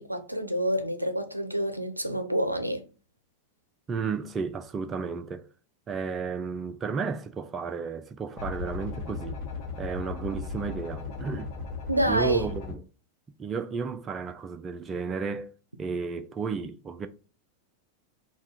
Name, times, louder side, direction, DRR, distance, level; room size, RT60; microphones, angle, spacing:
voice 1, 0.0-2.8 11.9-12.5, right 1 dB, 85° right, 0.5 m, -28 dB
voice 2, 3.9-5.5 5.9-9.4 9.8-11.5 12.1-12.8 13.4-15.5 15.8-17.1, right 5 dB, 20° right, 0.3 m, -33 dB
sound 1, 8.4-12.8, left 4 dB, 45° left, 1.1 m, -36 dB
3.5 x 2.3 x 4.1 m
figure-of-eight pair, 90°, 0 cm